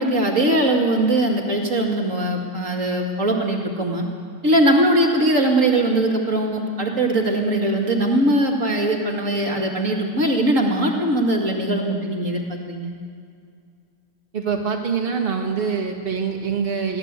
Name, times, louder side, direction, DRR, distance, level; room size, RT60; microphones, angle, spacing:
voice 1, 0.0-4.0 4.4-12.9, right 1 dB, 50° right, 1 dB, 2.5 m, -20 dB
voice 2, 14.3-17.0, right 6 dB, 35° right, 1 dB, 2.1 m, -24 dB
22.0 x 16.5 x 8.2 m, 2.3 s
omnidirectional pair, 1.8 m